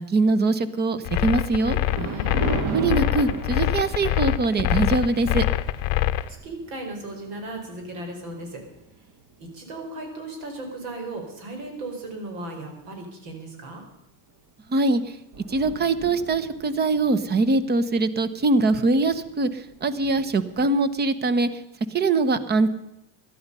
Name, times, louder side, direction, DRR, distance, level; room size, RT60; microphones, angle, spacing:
voice 1, 0.0-1.8 2.7-5.4 14.7-15.0 15.5-21.5 21.9-22.7, right 3 dB, 20° right, 15 dB, 0.9 m, -22 dB
sound 1, 1.1-6.3, left 15 dB, 50° left, 0.8 m, -24 dB
Thunder, 1.6-10.1 10.6-10.9 11.6-11.7 12.0-12.1 14.3-14.5 14.8-14.9 15.1-21.1, right 4 dB, 45° right, 1.9 m, -38 dB
voice 2, 2.0-2.3 6.0-8.6 9.0-9.1 9.4-13.8, right 2 dB, 65° right, 3 dB, 5.1 m, -36 dB
17.5 x 12.5 x 5.5 m, 0.88 s
supercardioid pair, 135°, 44 cm